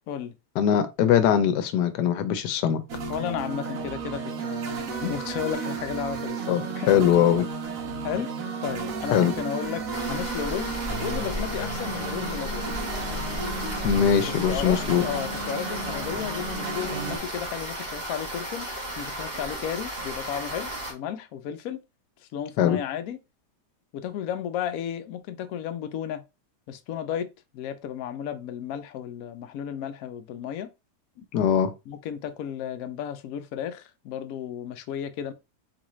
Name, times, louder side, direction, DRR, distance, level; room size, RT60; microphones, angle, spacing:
voice 1, 0.6-2.8 6.5-7.5 9.1-9.3 13.8-15.0 22.6-22.8 31.3-31.7, left 9 dB, 90° left, 1.2 m, -21 dB
sound 1, 2.9-17.2, right 3 dB, 60° right, 1.2 m, -33 dB
voice 2, 3.1-6.9 8.0-8.3 8.6-12.7 14.3-18.7 19.0-21.8 22.2-23.2 23.9-26.2 26.7-30.7 31.9-35.3, left 9 dB, 70° left, 0.9 m, -33 dB
sound 2, 9.9-20.9, right 1 dB, 30° right, 1.1 m, -34 dB
3.9 x 2.5 x 3.0 m
omnidirectional pair, 1.8 m